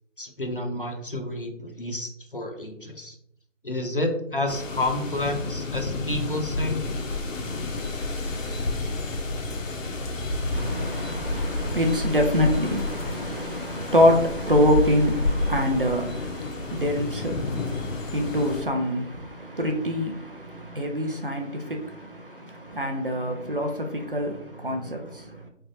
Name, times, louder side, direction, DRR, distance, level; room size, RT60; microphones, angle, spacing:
voice 1, 0.2-3.2 3.6-6.8, left 1 dB, 45° left, 0.5 m, -30 dB
sound 1, 4.5-18.6, left 2 dB, 85° left, 0.8 m, -30 dB
voice 2, 10.5-25.5, equal, 45° right, 0.5 m, -25 dB
3.3 x 3.3 x 2.6 m
figure-of-eight pair, 170°, 38 cm